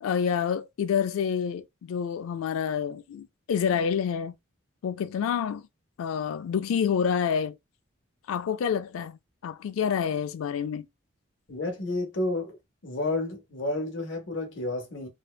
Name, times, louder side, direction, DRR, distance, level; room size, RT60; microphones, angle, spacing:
voice 1, 0.0-4.3 4.8-5.6 6.0-7.6 8.3-9.2 9.4-10.9, left 7 dB, 80° left, 0.3 m, -28 dB
voice 2, 11.5-12.6 12.8-15.1, left 2 dB, 60° left, 0.7 m, -30 dB
2.7 x 2.1 x 2.2 m
head